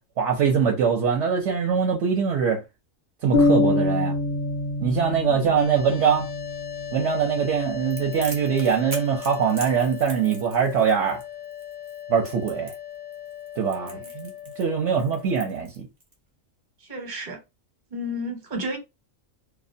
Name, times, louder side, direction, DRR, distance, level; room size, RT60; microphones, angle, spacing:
voice 1, 0.2-2.6 3.2-4.2 4.8-6.3 6.9-11.2 12.1-12.7 13.6-15.9, right 6 dB, 70° right, 0.8 m, -23 dB
sound 1, 3.3-7.1, left 2 dB, 60° left, 0.6 m, -24 dB
voice 2, 5.2-5.5 13.8-14.0 16.8-17.4 17.9-18.8, equal, 40° right, 0.9 m, -32 dB
sound 2, 5.6-15.6, left 11 dB, 85° left, 1.0 m, -38 dB
Crackle, 7.9-16.1, right 1 dB, 25° right, 0.5 m, -42 dB
2.3 x 2.1 x 2.6 m
omnidirectional pair, 1.4 m